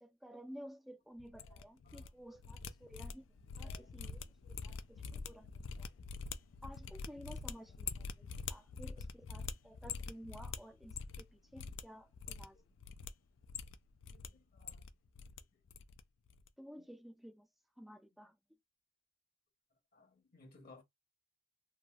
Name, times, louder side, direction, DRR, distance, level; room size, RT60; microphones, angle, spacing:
voice 1, 0.0-5.9 6.6-12.6 16.6-17.5 17.8-18.4, equal, ahead, 0.3 m, -54 dB
sound 1, 1.2-2.1 2.3-11.3 11.5-11.8 12.1-13.1 13.4-14.3 14.5-15.4 15.7-16.0 16.3-16.5, left 5 dB, 70° left, 0.4 m, -45 dB
voice 2, 1.4-2.1 3.6-4.5 4.9-5.2 5.5-5.8 7.6-8.0 12.5-12.6 14.1-14.9 19.9-20.8, left 3 dB, 45° left, 0.9 m, -63 dB
3.1 x 2.5 x 2.3 m
head